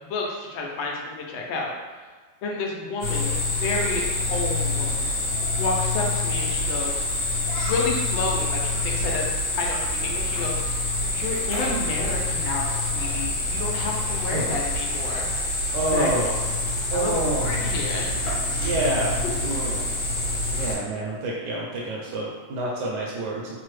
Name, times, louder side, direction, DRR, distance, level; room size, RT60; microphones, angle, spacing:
voice 1, 0.1-1.7 2.4-4.0 4.3-5.1 5.5-7.0 7.6-10.6 11.1-15.3 15.9-16.4 16.9-18.1 18.5-18.6 22.1-22.2, left 3 dB, 85° left, -1 dB, 1.4 m, -30 dB
sound 1, 3.0-20.7, left 2 dB, 65° left, 1.5 m, -26 dB
voice 2, 15.7-16.4 16.9-17.5 18.5-19.1 19.4-19.9 20.5-23.5, right 1 dB, 70° right, -4 dB, 1.1 m, -27 dB
3.5 x 2.0 x 3.1 m, 1.4 s
omnidirectional pair, 2.1 m